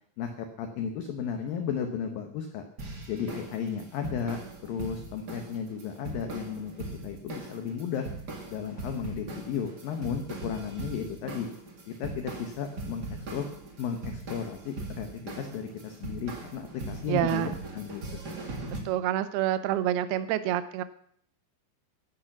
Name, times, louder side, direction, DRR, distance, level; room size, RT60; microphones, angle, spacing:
voice 1, 0.2-2.6 3.1-4.4 4.7-6.7 7.0-8.1 8.5-11.5 11.9-13.5 13.8-18.4, left 7 dB, 75° left, 5 dB, 2.1 m, -34 dB
sound 1, 2.8-18.8, right 3 dB, 45° right, 1.3 m, -40 dB
voice 2, 17.1-17.5 18.9-20.8, right 12 dB, 80° right, 12 dB, 2.3 m, -27 dB
15.5 x 10.5 x 6.0 m, 0.63 s
omnidirectional pair, 5.7 m